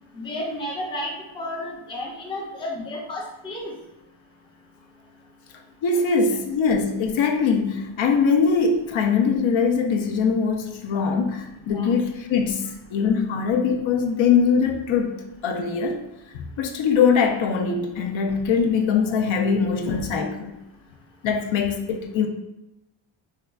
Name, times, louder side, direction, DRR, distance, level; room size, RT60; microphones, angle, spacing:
voice 1, 0.1-3.7 11.7-11.9, left 1 dB, 10° left, -3 dB, 0.4 m, -32 dB
voice 2, 5.8-15.1 15.4-16.0 16.3-20.5 21.2-22.3, left 5 dB, 70° left, 3 dB, 0.5 m, -22 dB
4.5 x 2.2 x 2.3 m, 0.94 s
wide cardioid pair, 175°, 49 cm